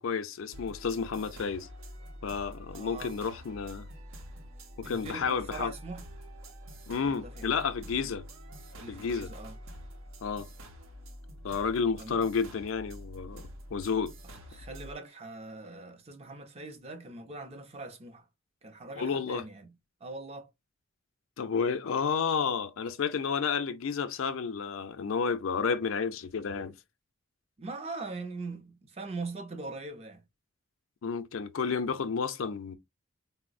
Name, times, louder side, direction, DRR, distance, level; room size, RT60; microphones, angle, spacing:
voice 1, 0.0-1.7 2.2-3.9 4.8-5.7 6.9-8.3 8.9-9.3 10.2-10.5 11.4-14.1 19.0-19.4 21.4-26.7 31.0-32.8, left 5 dB, 75° left, 0.4 m, -31 dB
sound 1, 0.5-15.0, equal, 80° right, 0.7 m, -47 dB
voice 2, 2.7-3.2 4.8-6.0 7.0-7.5 8.8-9.6 12.0-12.2 14.2-18.2 18.6-19.7 20.0-20.5 27.6-30.2, right 3 dB, 30° right, 0.5 m, -42 dB
3.8 x 2.0 x 2.4 m
head